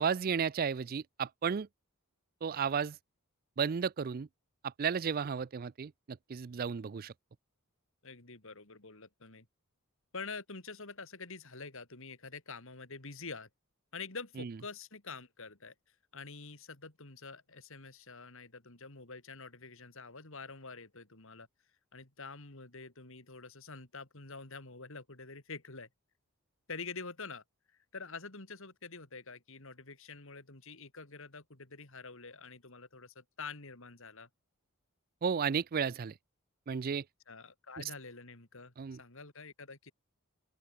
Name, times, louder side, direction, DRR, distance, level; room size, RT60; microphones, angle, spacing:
voice 1, 0.0-1.7 2.4-3.0 3.6-4.3 4.6-7.1 14.4-14.5 35.2-36.1 36.7-37.0 37.8-37.9 38.8-39.0, right 6 dB, 40° right, 0.4 m, -33 dB
voice 2, 8.0-9.5 10.1-13.5 13.9-15.7 16.1-21.5 21.9-25.9 26.7-27.4 27.9-34.3 37.3-39.9, left 4 dB, 60° left, 3.0 m, -47 dB
open air
head